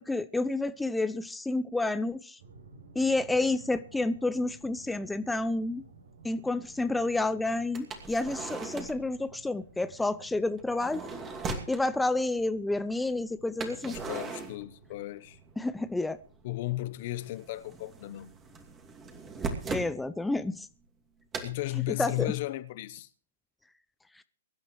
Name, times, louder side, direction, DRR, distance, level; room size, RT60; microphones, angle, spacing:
voice 1, 0.0-2.4 3.0-5.8 6.2-11.0 11.7-14.0 15.6-16.2 19.7-20.7 22.0-22.3 24.2-24.3, left 2 dB, 5° left, 0.6 m, -29 dB
sound 1, 2.4-20.7, right 4 dB, 70° right, 5.2 m, -56 dB
sound 2, 4.6-4.7 5.4-5.5 7.7-9.1 10.6-11.8 13.6-15.3 15.5-16.4 16.6-19.9 21.3-21.5, right 4 dB, 20° right, 2.5 m, -39 dB
voice 2, 13.7-15.4 16.4-18.3 21.4-23.1, left 17 dB, 45° left, 1.0 m, -35 dB
24.0 x 12.0 x 3.2 m
figure-of-eight pair, 115°, 0 cm